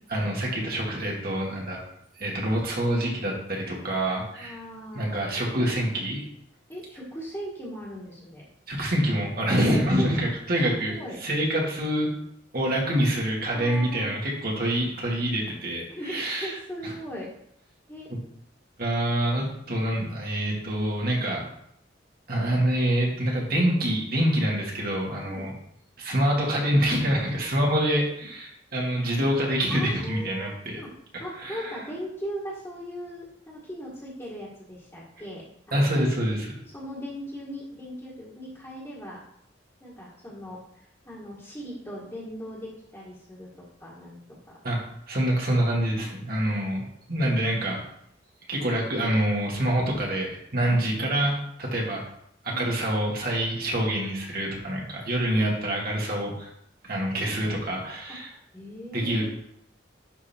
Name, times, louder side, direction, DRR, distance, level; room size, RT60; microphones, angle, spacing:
voice 1, 0.1-1.8 2.2-4.6 4.9-6.2 8.7-10.9 11.2-12.1 12.5-16.5 18.8-21.4 22.3-25.5 26.0-30.8 31.1-31.8 35.7-36.6 44.6-44.8 45.1-47.8 48.5-52.0 52.4-56.5 56.8-58.3 58.9-59.2, right 1 dB, 55° right, -2 dB, 2.3 m, -26 dB
voice 2, 4.4-5.2 6.7-8.5 10.0-10.1 10.5-10.6 10.9-11.2 13.5-14.1 15.9-17.3 17.9-18.1 25.2-25.5 29.7-30.9 31.2-35.9 36.7-39.2 39.8-44.6 51.0-51.3 52.5-52.9 55.3-55.7 58.1-58.2 58.5-59.2, equal, 15° left, -7 dB, 1.9 m, -39 dB
11.0 x 4.2 x 4.5 m, 0.72 s
head